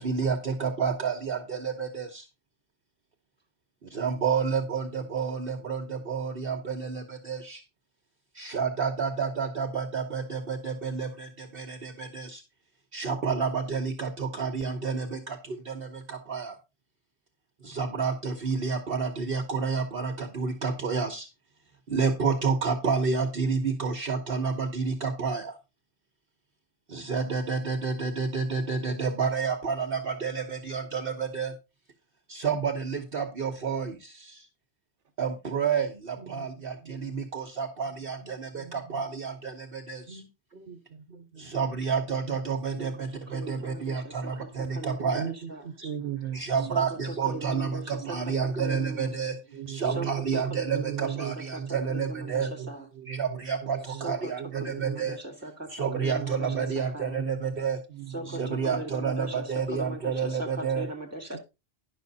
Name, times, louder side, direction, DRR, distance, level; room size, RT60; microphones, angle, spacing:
voice 1, 0.0-2.3 3.8-7.6 8.3-12.4 12.9-16.6 17.6-21.3 21.9-25.6 26.9-31.5 32.3-34.5 35.2-40.2 40.5-40.7 41.4-45.2 46.3-49.4 49.7-52.5 53.1-55.2 55.7-57.8 58.4-60.9, right 5 dB, 55° right, 1.2 m, -30 dB
voice 2, 36.2-36.9 38.2-39.0 40.1-40.3 40.6-41.9 42.2-42.9 45.1-46.9 47.3-47.7 48.0-55.2 55.8-57.6 57.9-58.8 61.3-61.4, right 10 dB, 75° right, 1.2 m, -39 dB
voice 3, 42.8-45.6 46.6-49.2 49.8-52.9 53.9-54.3 54.6-57.2 58.1-61.4, right 2 dB, 15° right, 2.1 m, -40 dB
11.0 x 6.2 x 4.0 m
omnidirectional pair, 1.2 m